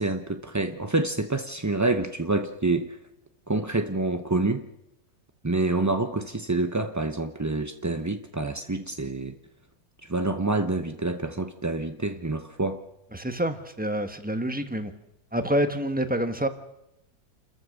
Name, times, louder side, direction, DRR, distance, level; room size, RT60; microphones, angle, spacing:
voice 1, 0.0-3.0 3.5-4.6 5.4-9.3 10.0-12.8, right 2 dB, 25° right, 7 dB, 0.4 m, -27 dB
voice 2, 13.1-14.9 15.3-16.5, equal, 5° right, 8 dB, 1.1 m, -27 dB
29.0 x 14.0 x 6.5 m, 0.89 s
omnidirectional pair, 1.8 m